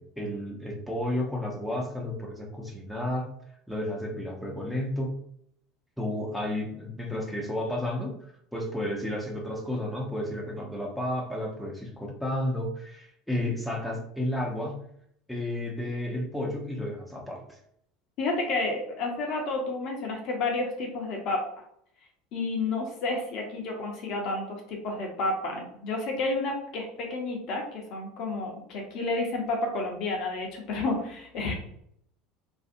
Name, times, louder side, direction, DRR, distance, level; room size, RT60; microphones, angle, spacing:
voice 1, 0.0-3.3 3.7-5.1 6.0-8.1 8.5-14.9 15.3-17.4, left 1 dB, ahead, -1 dB, 0.7 m, -32 dB
voice 2, 18.2-21.4 22.3-31.5, left 2 dB, 50° left, 1 dB, 0.7 m, -30 dB
2.6 x 2.4 x 2.5 m, 0.68 s
figure-of-eight pair, 70°, 0 cm